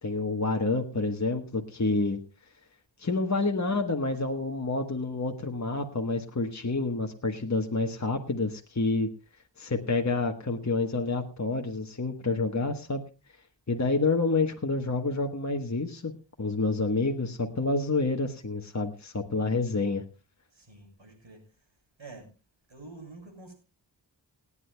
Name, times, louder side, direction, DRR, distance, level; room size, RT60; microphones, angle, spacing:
voice 1, 0.0-2.2 3.0-9.1 9.6-13.0 13.7-16.1 16.4-20.0, left 3 dB, 40° left, 3 dB, 1.2 m, -28 dB
voice 2, 20.5-21.4 22.0-22.3 22.7-23.5, right 3 dB, 80° right, 2 dB, 7.0 m, -47 dB
29.0 x 9.8 x 2.2 m, 0.30 s
wide cardioid pair, 50°, 45 cm